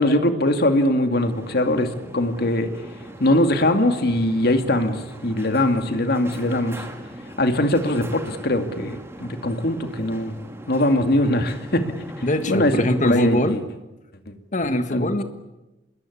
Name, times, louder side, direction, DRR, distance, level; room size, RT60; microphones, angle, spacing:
voice 1, 0.0-1.9 2.1-2.7 3.2-6.8 7.4-10.4 10.7-11.8 12.5-12.7 13.0-13.4 14.3-14.4 14.9-15.2, left 1 dB, 60° left, 6 dB, 2.4 m, -21 dB
sound 1, 1.1-13.6, right 1 dB, 15° right, 3.3 m, -40 dB
voice 2, 12.2-13.6 14.5-15.2, left 1 dB, 45° left, 9 dB, 1.7 m, -22 dB
25.5 x 21.0 x 8.6 m, 1.0 s
head